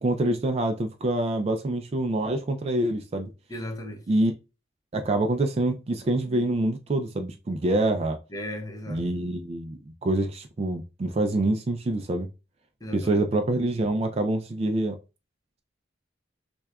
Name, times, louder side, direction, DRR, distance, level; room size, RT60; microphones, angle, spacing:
voice 1, 0.0-3.3 4.1-4.3 4.9-8.2 8.9-12.3 12.9-15.0, right 2 dB, 30° right, 0.3 m, -26 dB
voice 2, 3.5-4.1 8.3-9.1 12.8-13.3, left 1 dB, 20° left, 0.6 m, -36 dB
6.1 x 2.3 x 2.2 m
head